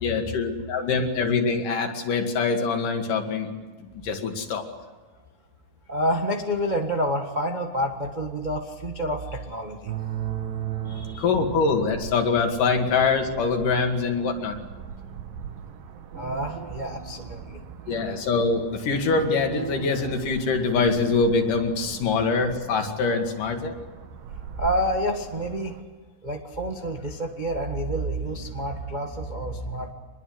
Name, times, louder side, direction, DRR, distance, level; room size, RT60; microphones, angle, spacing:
voice 1, 0.0-3.5 3.8-4.6 11.2-14.6 17.9-23.8, left 4 dB, 75° left, 4 dB, 3.7 m, -24 dB
voice 2, 5.9-9.9 10.8-11.2 16.1-17.6 24.6-25.7 26.2-29.9, equal, 30° right, 2 dB, 0.8 m, -28 dB
sound 1, 9.9-25.8, right 9 dB, 90° right, 3.1 m, -38 dB
25.0 x 21.0 x 7.9 m, 1.3 s
omnidirectional pair, 3.8 m